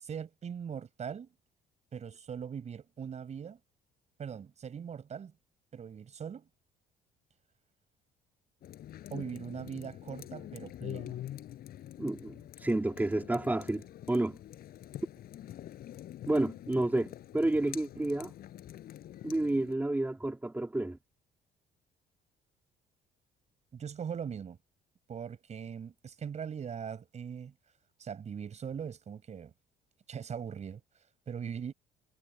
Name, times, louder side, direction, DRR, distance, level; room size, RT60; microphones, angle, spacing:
voice 1, 0.0-1.3 1.9-3.6 4.2-5.3 5.7-6.5 9.1-11.2 23.7-24.6 25.1-27.5 28.0-29.5 30.1-30.8 31.3-31.7, right 7 dB, 40° right, 6.0 m, -40 dB
sound 1, 8.6-19.7, left 12 dB, 65° left, 4.6 m, -46 dB
voice 2, 12.0-14.4 16.3-18.3 19.2-21.0, right 2 dB, 10° right, 3.1 m, -30 dB
cardioid pair, 110°, 17 cm